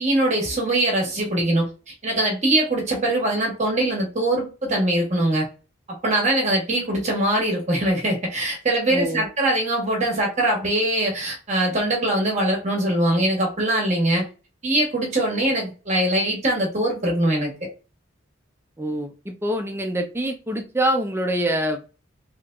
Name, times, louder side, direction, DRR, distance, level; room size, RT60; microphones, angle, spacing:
voice 1, 0.0-5.5 5.9-14.2 14.6-17.5, right 1 dB, 35° right, -1 dB, 1.0 m, -22 dB
voice 2, 8.9-9.2 18.8-21.9, right 1 dB, 10° right, 4 dB, 0.5 m, -25 dB
3.2 x 2.9 x 2.4 m, 0.33 s
head